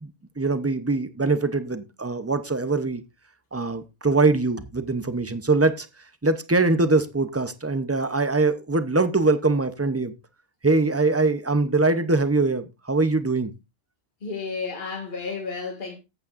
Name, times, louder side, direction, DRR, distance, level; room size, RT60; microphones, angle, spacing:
voice 1, 0.0-3.0 3.5-5.9 6.2-10.1 10.6-13.5, right 3 dB, 20° right, 0.4 m, -23 dB
voice 2, 14.2-16.0, left 4 dB, 40° left, 1.9 m, -32 dB
13.5 x 8.5 x 2.5 m
omnidirectional pair, 1.3 m